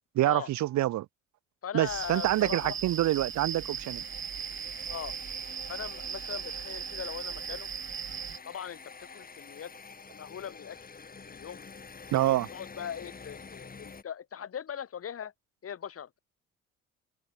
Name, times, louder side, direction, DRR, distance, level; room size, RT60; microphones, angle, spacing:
voice 1, 0.1-1.1 1.7-4.0 12.1-12.5, right 14 dB, 70° right, 0.7 m, -26 dB
voice 2, 1.6-2.8 4.9-5.1 5.7-7.7 8.5-9.7 10.1-10.8 11.3-11.6 12.5-15.3 15.6-16.2, left 8 dB, 50° left, 2.1 m, -40 dB
sound 1, 1.8-8.4, right 8 dB, 40° right, 1.0 m, -38 dB
sound 2, 2.8-14.0, left 5 dB, 30° left, 2.5 m, -48 dB
open air
cardioid pair, 90°, 30 cm